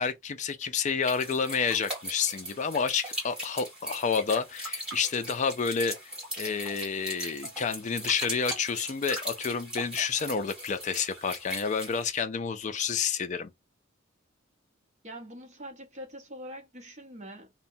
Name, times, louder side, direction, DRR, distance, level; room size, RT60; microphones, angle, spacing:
voice 1, 0.0-13.5, left 6 dB, 40° left, 0.4 m, -29 dB
sound 1, 1.0-12.1, equal, 5° right, 1.5 m, -39 dB
voice 2, 15.0-17.5, equal, 35° right, 0.8 m, -44 dB
2.8 x 2.1 x 2.6 m
head